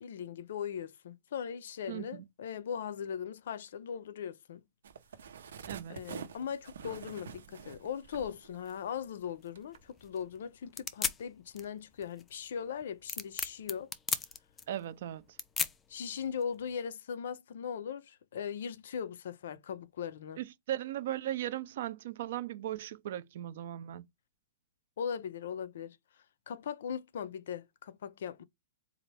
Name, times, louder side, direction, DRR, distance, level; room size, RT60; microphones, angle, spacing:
voice 1, 0.0-4.6 5.9-13.9 15.9-20.4 25.0-26.0 26.5-28.4, left 7 dB, 65° left, 0.5 m, -39 dB
voice 2, 1.9-2.3 5.7-6.0 14.7-15.2 20.4-24.0, right 12 dB, 50° right, 0.5 m, -37 dB
sound 1, 4.8-9.2 9.5-9.8, right 7 dB, 90° right, 0.9 m, -47 dB
sound 2, 8.6-16.7, left 6 dB, 10° left, 0.3 m, -39 dB
4.1 x 2.4 x 3.3 m
hypercardioid pair, 175°, 0 cm